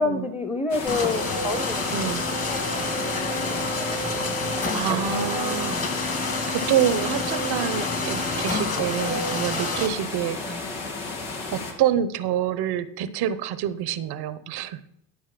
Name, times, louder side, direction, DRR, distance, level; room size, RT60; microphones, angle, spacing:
voice 1, 0.0-1.9 2.5-4.0 7.1-7.2 10.4-10.6, left 3 dB, 15° left, 8 dB, 1.1 m, -29 dB
sound 1, 0.7-11.7, left 3 dB, 85° left, 2.0 m, -33 dB
sound 2, 0.9-9.9, left 2 dB, 35° left, 2.2 m, -28 dB
voice 2, 1.9-2.2 4.7-6.2 6.5-10.7 11.5-14.9, right 10 dB, 70° right, 14 dB, 0.9 m, -27 dB
11.5 x 4.6 x 5.8 m, 0.75 s
supercardioid pair, 65°, 41 cm